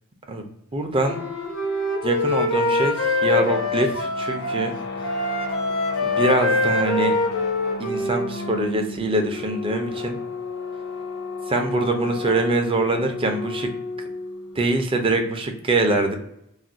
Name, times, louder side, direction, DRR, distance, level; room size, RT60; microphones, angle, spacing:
voice 1, 0.7-1.2 2.0-4.7 6.0-7.2 7.8-10.2 11.5-13.7 14.6-16.1, right 2 dB, 25° right, 4 dB, 0.4 m, -23 dB
sound 1, 0.9-14.7, left 3 dB, 50° left, 0.4 m, -34 dB
Wind instrument woodwind instrument, 1.0-4.7 5.0-8.6, left 3 dB, 85° left, 0.8 m, -24 dB
2.4 x 2.1 x 3.8 m, 0.76 s
head